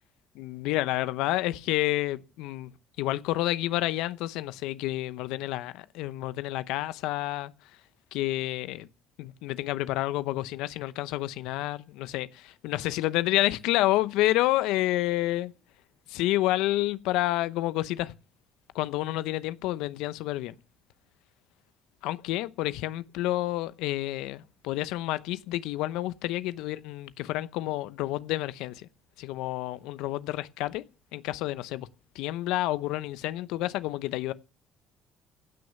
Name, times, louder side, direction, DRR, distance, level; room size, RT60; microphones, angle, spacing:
voice 1, 0.4-2.7 3.0-7.5 8.1-8.9 9.2-15.5 16.1-18.1 18.7-20.6 22.0-28.9 29.2-30.8 31.1-31.9 32.1-34.3, left 16 dB, 80° left, 0.8 m, -29 dB
16.0 x 6.4 x 9.3 m
supercardioid pair, 70°, 0 cm